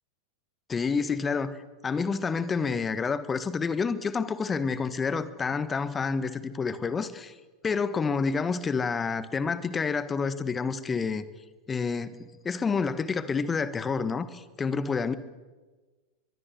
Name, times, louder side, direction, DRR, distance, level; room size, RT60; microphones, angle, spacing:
voice 1, 0.7-1.6 1.8-7.4 7.6-11.3 11.7-15.1, left 5 dB, 15° left, 1.6 m, -28 dB
23.5 x 23.5 x 8.0 m
figure-of-eight pair, 90°, 0 cm